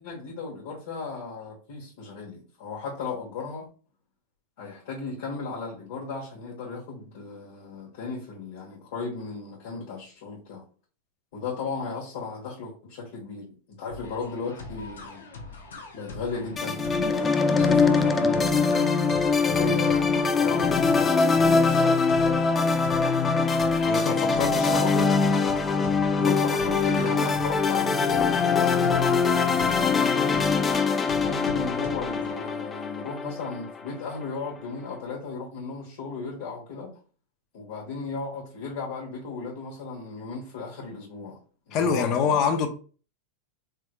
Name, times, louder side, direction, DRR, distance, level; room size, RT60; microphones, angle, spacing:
voice 1, 0.0-3.7 4.6-10.6 11.3-15.3 15.9-19.0 19.3-21.8 24.7-25.0 26.2-29.9 31.1-36.9 37.5-41.4 41.7-42.4, left 4 dB, 70° left, 1.3 m, -35 dB
sound 1, 13.9-32.5, left 3 dB, 90° left, 0.9 m, -42 dB
sound 2, 16.6-33.9, left 4 dB, 20° left, 0.4 m, -23 dB
voice 2, 23.8-25.0 41.7-42.7, left 6 dB, 45° left, 0.8 m, -25 dB
3.5 x 3.1 x 2.2 m
hypercardioid pair, 110°, 0 cm